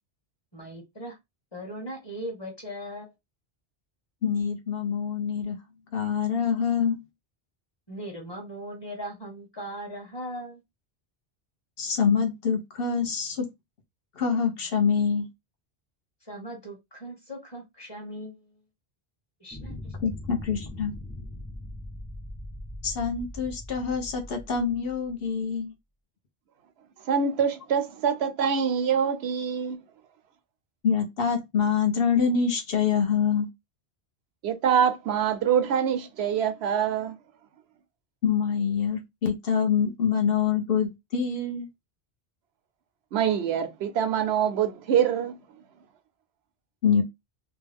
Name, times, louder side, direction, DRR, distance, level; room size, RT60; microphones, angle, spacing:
voice 1, 0.5-1.2 1.5-3.1 7.9-10.6 16.2-18.5 19.4-19.9, equal, 25° left, 1.2 m, -39 dB
voice 2, 4.2-5.6 5.9-7.0 11.8-13.5 14.2-15.3 20.0-20.9 22.8-25.7 30.8-33.5 38.2-41.7 46.8-47.0, left 6 dB, 65° left, 1.0 m, -25 dB
sound 1, 19.5-25.3, left 1 dB, 5° right, 0.3 m, -40 dB
voice 3, 27.1-29.8 34.4-37.1 43.1-45.4, right 8 dB, 85° right, 0.9 m, -25 dB
3.0 x 2.3 x 3.4 m
omnidirectional pair, 1.0 m